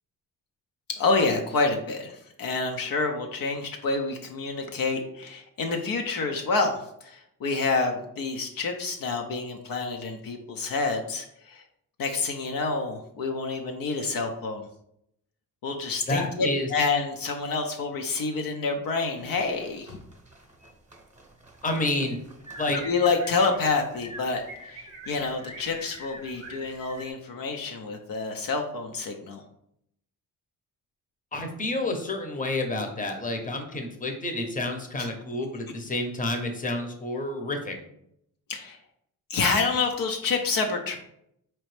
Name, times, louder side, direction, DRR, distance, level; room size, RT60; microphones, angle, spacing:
voice 1, 1.0-11.6 12.0-14.7 15.6-20.0 22.7-29.4 35.0-35.1 38.5-38.8 39.3-41.0, left 4 dB, 65° left, 3 dB, 0.6 m, -28 dB
voice 2, 16.1-16.7 21.6-22.2 22.6-22.8 31.3-37.7, left 2 dB, 20° left, 4 dB, 0.8 m, -29 dB
sound 1, 19.2-27.1, right 1 dB, 20° right, 1.0 m, -45 dB
4.1 x 3.0 x 3.2 m, 0.74 s
cardioid pair, 65°, 37 cm